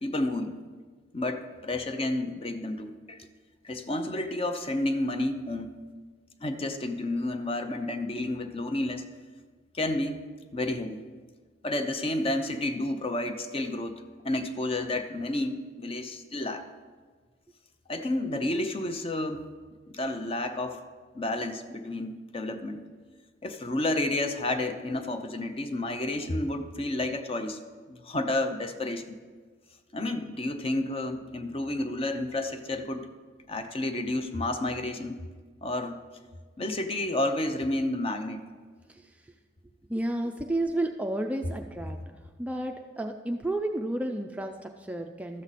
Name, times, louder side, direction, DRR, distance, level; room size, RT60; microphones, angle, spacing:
voice 1, 0.0-0.6 1.1-3.2 3.6-5.7 6.4-9.1 9.7-10.3 10.5-11.0 11.6-16.7 17.9-19.5 19.9-20.8 21.1-22.8 23.4-27.6 27.9-29.2 29.9-33.1 33.5-35.2 35.6-36.0 36.6-38.4, left 1 dB, 30° left, 8 dB, 0.6 m, -30 dB
voice 2, 39.9-42.0 42.4-45.4, right 1 dB, 10° right, 4 dB, 0.3 m, -31 dB
12.5 x 7.6 x 4.1 m, 1.5 s
head